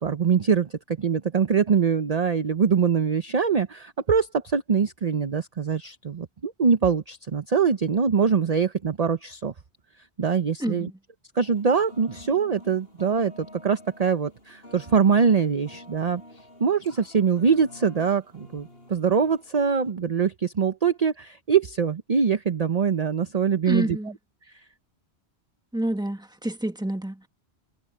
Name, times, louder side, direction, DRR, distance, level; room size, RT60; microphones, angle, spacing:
voice 1, 0.0-9.5 10.2-10.9 11.4-16.2 16.6-24.0, right 6 dB, 40° right, 0.8 m, -23 dB
voice 2, 10.6-11.0 23.6-24.2 25.7-27.3, right 1 dB, 5° right, 1.4 m, -28 dB
sound 1, 11.3-19.9, left 1 dB, 60° left, 6.8 m, -48 dB
omnidirectional pair, 1.1 m